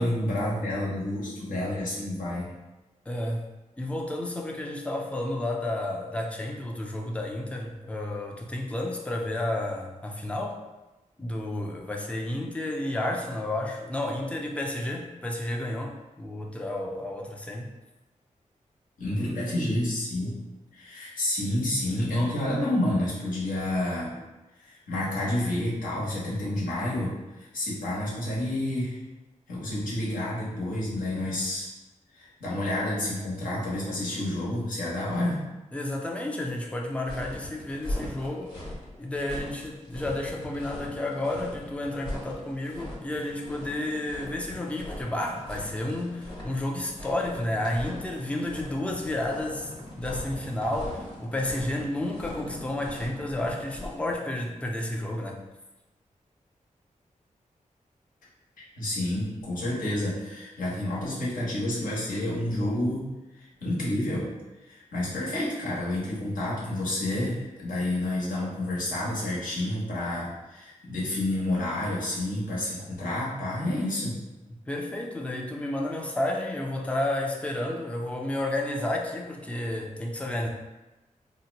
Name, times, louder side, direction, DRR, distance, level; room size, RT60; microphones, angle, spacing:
voice 1, 0.0-2.5 19.0-20.3 20.7-24.1 24.6-29.0 29.5-31.7 32.1-35.4 58.8-63.1 63.3-64.3 64.6-74.2, left 1 dB, 85° left, -6 dB, 1.1 m, -29 dB
voice 2, 3.1-3.4 3.8-10.6 11.2-17.7 35.7-38.5 39.0-49.7 50.0-55.4 74.7-80.5, left 1 dB, 10° left, 1 dB, 0.3 m, -31 dB
sound 1, 37.0-54.1, left 1 dB, 35° left, 0.9 m, -40 dB
2.8 x 2.1 x 3.9 m, 1.0 s
wide cardioid pair, 175°, 14 cm